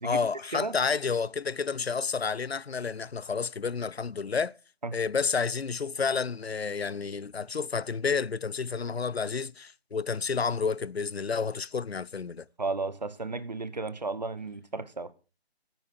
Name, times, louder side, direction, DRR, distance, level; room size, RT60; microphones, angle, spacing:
voice 1, 0.0-4.5 4.9-12.4, left 5 dB, 65° left, 0.6 m, -30 dB
voice 2, 12.6-15.1, right 3 dB, 40° right, 0.9 m, -33 dB
15.0 x 9.0 x 4.9 m
figure-of-eight pair, 165°, 33 cm